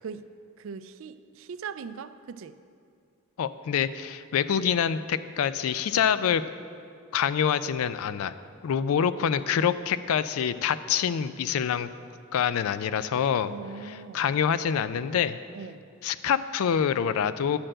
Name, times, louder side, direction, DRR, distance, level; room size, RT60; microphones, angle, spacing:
voice 1, 0.6-2.6 13.5-14.3 15.5-15.9, right 5 dB, 60° right, 13 dB, 0.3 m, -40 dB
voice 2, 3.4-6.4 7.1-8.3 8.6-11.9 12.3-13.5 13.8-15.4 16.0-17.6, left 8 dB, 70° left, 14 dB, 0.3 m, -26 dB
10.0 x 4.4 x 7.5 m, 2.5 s
head